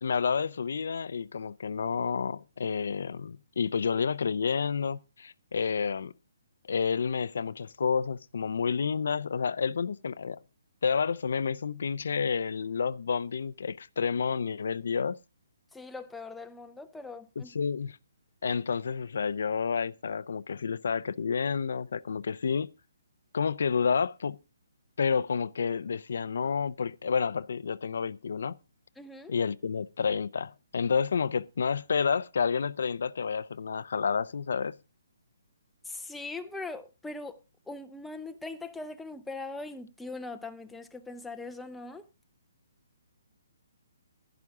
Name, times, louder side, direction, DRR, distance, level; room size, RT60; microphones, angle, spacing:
voice 1, 0.0-6.1 6.7-10.4 10.8-15.2 17.4-18.0 18.4-22.7 23.3-24.4 25.0-28.6 29.3-34.8, left 6 dB, 65° left, 0.5 m, -30 dB
voice 2, 15.7-17.5 29.0-29.3 35.8-37.4 37.7-42.1, left 3 dB, 5° left, 0.5 m, -41 dB
11.0 x 10.5 x 3.6 m
hypercardioid pair, 165°, 0 cm